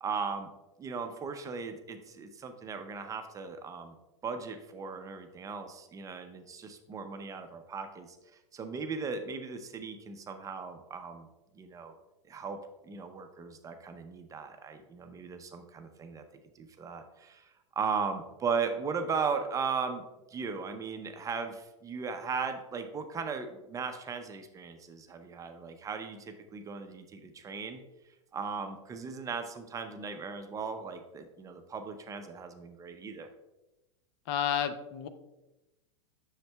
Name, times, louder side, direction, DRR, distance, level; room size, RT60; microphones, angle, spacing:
voice 1, 0.0-0.5 0.8-4.0 4.2-8.2 8.5-11.3 11.5-11.9 12.3-12.6 12.8-16.2 16.5-20.0 20.3-27.8 28.3-33.3, right 5 dB, 20° right, 6 dB, 0.6 m, -37 dB
voice 2, 34.3-35.1, left 9 dB, 55° left, 10 dB, 0.6 m, -30 dB
7.7 x 6.4 x 2.2 m, 1.0 s
hypercardioid pair, 120°, 16 cm